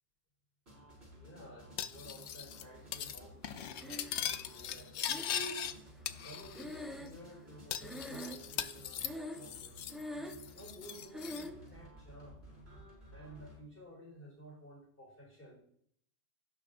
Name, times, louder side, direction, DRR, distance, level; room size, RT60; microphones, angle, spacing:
sound 1, 0.7-13.6, equal, 65° right, 4.6 m, -55 dB
voice 1, 1.1-5.5 6.2-9.8 10.5-12.4 13.1-15.6, equal, 50° left, -3 dB, 2.7 m, -54 dB
Cutlery silverware, 1.8-2.6 2.9-3.2 3.4-5.7 6.1-6.8 7.1-7.2 7.7-10.0 10.3-11.5, left 9 dB, 75° left, 0.9 m, -40 dB
Breathing, 3.8-4.5 5.1-7.5 7.8-8.6 9.0-9.6 9.9-10.5 11.1-11.6, equal, ahead, 0.7 m, -44 dB
17.0 x 6.2 x 2.5 m, 0.66 s
omnidirectional pair, 1.2 m